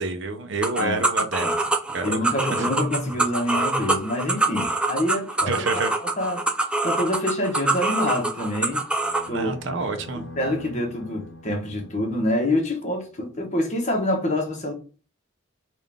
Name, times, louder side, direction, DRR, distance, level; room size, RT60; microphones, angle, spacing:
voice 1, 0.0-1.5 1.9-2.2 2.6-2.7 5.5-5.9 9.3-10.3, right 3 dB, 65° right, 0.6 m, -28 dB
sound 1, 0.6-9.3, right 2 dB, 5° right, 0.3 m, -25 dB
voice 2, 2.0-6.4 6.8-8.8 9.3-9.8 10.1-14.7, left 1 dB, 35° left, 1.1 m, -26 dB
sound 2, 9.0-13.3, left 1 dB, 70° left, 0.8 m, -44 dB
3.7 x 2.5 x 3.5 m
head